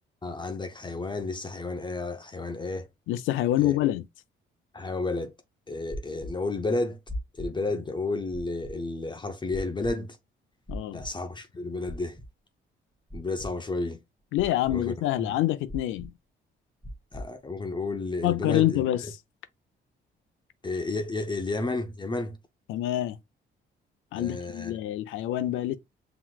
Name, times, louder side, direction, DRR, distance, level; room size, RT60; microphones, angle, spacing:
voice 1, 0.2-2.9 3.6-3.7 4.7-5.3 5.7-7.0 7.3-10.2 10.9-12.2 13.1-14.0 14.7-14.9 15.2-15.3 17.1-18.8 20.6-22.4 24.2-24.8, left 3 dB, 25° left, 0.6 m, -31 dB
voice 2, 3.1-4.0 10.7-11.0 14.3-16.1 18.2-19.0 22.7-23.2 24.1-25.8, left 14 dB, 90° left, 0.5 m, -26 dB
sound 1, 5.9-6.3 7.1-7.5 8.3-8.7 9.5-9.9 10.7-11.1 11.9-12.3 13.1-13.5 14.4-14.8 15.7-16.1 16.8-17.3, equal, ahead, 1.0 m, -37 dB
5.8 x 3.0 x 2.2 m
cardioid pair, 90°, 20 cm